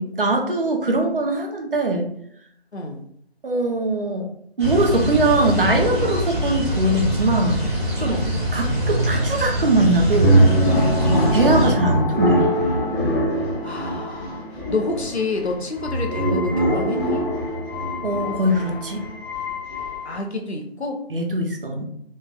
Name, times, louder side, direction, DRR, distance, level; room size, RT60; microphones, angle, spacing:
voice 1, 0.0-2.1 3.4-4.3 4.6-7.6 8.0-8.2 8.5-10.4 11.3-12.5 18.0-19.0 21.1-21.9, right 2 dB, 55° right, 2 dB, 0.8 m, -21 dB
voice 2, 2.7-3.0 8.0-8.3 11.1-11.4 13.6-14.4 14.7-17.2 20.0-21.0, left 2 dB, 85° left, 3 dB, 0.8 m, -28 dB
sound 1, 4.6-11.7, right 1 dB, 25° right, 1.0 m, -23 dB
sound 2, 7.4-20.1, equal, 15° left, 0.7 m, -23 dB
3.3 x 3.2 x 2.3 m, 0.68 s
figure-of-eight pair, 160°, 32 cm